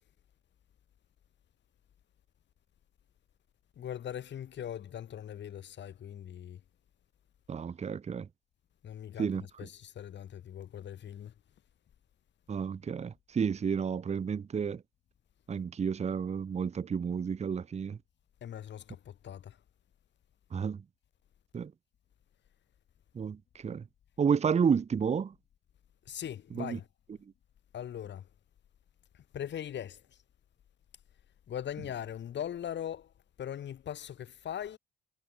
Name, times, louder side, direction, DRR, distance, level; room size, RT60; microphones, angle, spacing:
voice 1, 3.8-6.6 8.8-11.3 18.4-19.6 26.1-26.9 27.7-28.3 29.1-30.2 31.5-33.1 33.4-34.8, left 10 dB, 65° left, 4.1 m, -40 dB
voice 2, 7.5-8.3 9.2-9.4 12.5-14.8 15.5-18.0 20.5-20.8 21.5-21.7 23.2-23.8 24.2-25.3 26.6-26.8, right 6 dB, 35° right, 0.8 m, -31 dB
cardioid pair, 90°, 20 cm